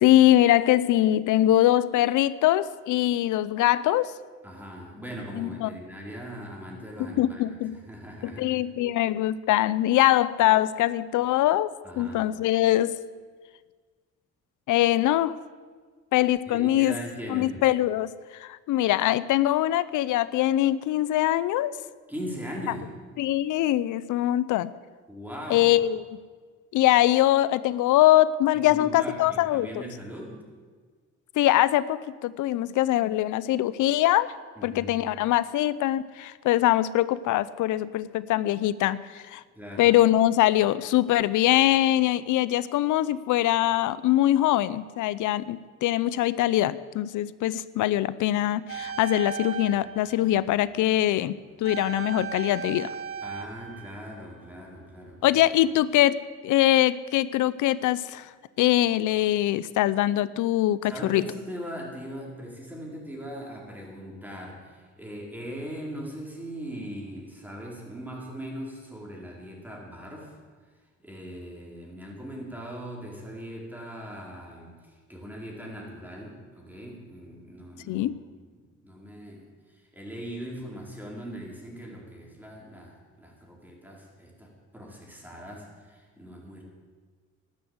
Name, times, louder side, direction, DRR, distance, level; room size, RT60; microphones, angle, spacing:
voice 1, 0.0-4.1 5.4-5.7 7.0-7.8 8.2-11.7 12.0-13.0 14.7-15.4 16.1-17.0 17.3-18.1 18.4-21.7 23.2-24.7 25.5-26.0 26.7-29.8 31.4-34.3 34.6-39.4 39.8-52.9 55.2-56.2 56.4-58.3 58.6-61.2 77.9-78.1, left 14 dB, 80° left, 17 dB, 0.6 m, -23 dB
voice 2, 4.4-7.4 7.7-8.6 11.8-12.3 16.5-17.6 22.1-22.9 25.1-25.7 28.5-30.4 34.6-35.0 39.5-39.9 53.2-55.4 60.8-70.3 71.0-74.7 75.1-78.1 78.8-79.4 79.7-86.6, equal, 5° right, -2 dB, 4.6 m, -40 dB
sound 1, 48.7-50.7 51.6-54.7 55.1-55.2, right 6 dB, 50° right, 1.2 m, -37 dB
12.0 x 11.5 x 8.0 m, 1.5 s
cardioid pair, 90°, 30 cm